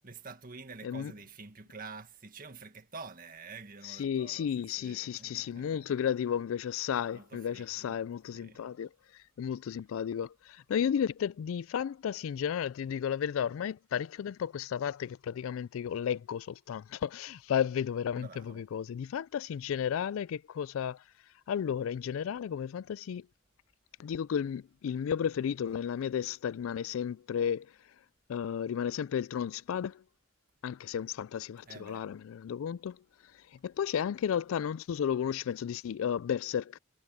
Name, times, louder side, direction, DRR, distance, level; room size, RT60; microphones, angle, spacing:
voice 1, 0.0-6.0 7.0-8.0 8.3-8.8 18.1-18.7 31.6-32.1, right 4 dB, 45° right, 1.7 m, -48 dB
voice 2, 3.8-8.9 9.4-21.0 21.5-23.3 24.0-27.7 28.3-30.0 30.6-33.0 33.6-36.8, left 8 dB, 75° left, 0.3 m, -33 dB
head